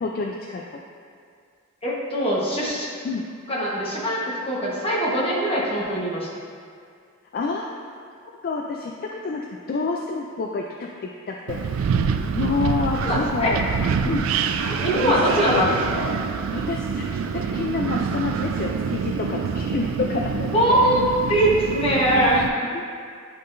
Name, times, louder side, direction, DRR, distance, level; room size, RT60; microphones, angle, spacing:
voice 1, 0.0-0.7 3.0-3.3 7.3-7.7 8.4-11.6 12.3-13.6 14.0-14.3 14.9-15.2 15.5-15.6 16.5-17.1 17.3-20.8 22.7-22.8, left 4 dB, 45° left, 0 dB, 0.3 m, -28 dB
voice 2, 1.8-2.9 3.5-6.3 13.0-13.5 14.6-16.1 20.5-22.5, right 1 dB, 25° left, -5 dB, 1.2 m, -22 dB
Wind, 11.5-22.5, right 6 dB, 75° right, 0.3 m, -26 dB
10.5 x 3.7 x 2.6 m, 2.2 s
head